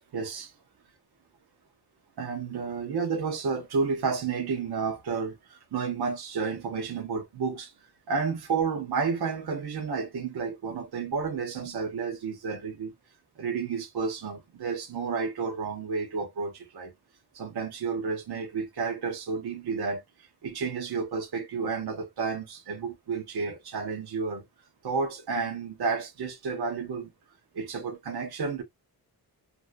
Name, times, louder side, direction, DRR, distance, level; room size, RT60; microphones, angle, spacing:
voice 1, 0.1-0.5 2.2-7.7 8.1-12.9 13.4-16.9 17.3-20.0 20.4-24.4 24.8-27.1 27.5-28.6, right 5 dB, 80° right, 0.8 m, -31 dB
2.6 x 2.1 x 2.3 m
wide cardioid pair, 175°, 38 cm